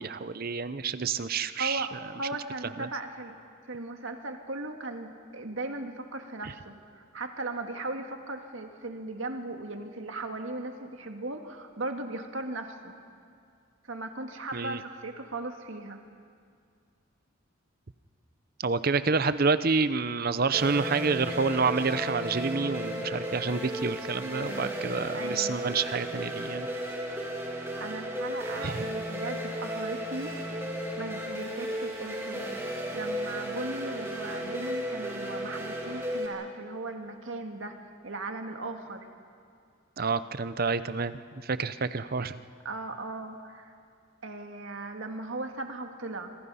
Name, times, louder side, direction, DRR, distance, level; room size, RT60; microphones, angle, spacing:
voice 1, 0.0-2.0 2.8-2.9 6.4-6.5 14.5-14.8 18.6-26.7 28.6-28.9 40.0-42.4, right 4 dB, 45° right, 13 dB, 0.7 m, -28 dB
voice 2, 1.6-3.4 3.7-12.9 13.8-16.0 25.1-25.6 27.8-30.3 31.0-37.8 38.0-39.1 42.6-43.7 44.2-46.4, right 2 dB, 75° right, 4 dB, 1.9 m, -37 dB
sound 1, 20.5-36.3, equal, 15° right, 2.9 m, -34 dB
28.0 x 24.5 x 5.6 m, 2.2 s
head